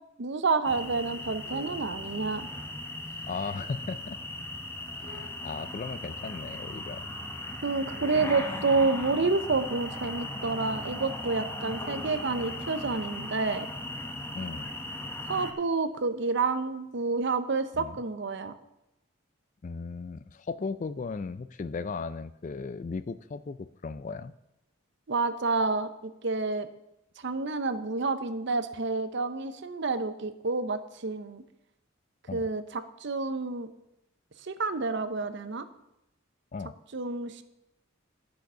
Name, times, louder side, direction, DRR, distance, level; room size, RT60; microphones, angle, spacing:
voice 1, 0.2-2.5 7.6-13.7 15.3-18.5 25.1-26.7 27.2-31.4 32.3-33.7 34.4-35.7 36.9-37.4, right 3 dB, 60° right, 11 dB, 0.7 m, -29 dB
sound 1, 0.6-15.5, left 1 dB, 10° left, 0.9 m, -38 dB
sound 2, 1.1-1.9 3.0-3.2 3.6-3.7 5.0-5.4 6.5-6.6 7.5-7.6 7.9-8.4 9.1-9.7 10.5-10.6 11.6-12.7 15.2-15.3 16.0-16.1 16.9-17.0, left 2 dB, 60° left, 2.8 m, -50 dB
voice 2, 3.3-4.2 5.0-7.0 14.3-14.7 17.8-18.0 19.6-24.3 32.3-32.5 36.5-36.7, left 4 dB, 35° left, 14 dB, 0.3 m, -36 dB
11.0 x 6.5 x 5.6 m, 0.88 s
head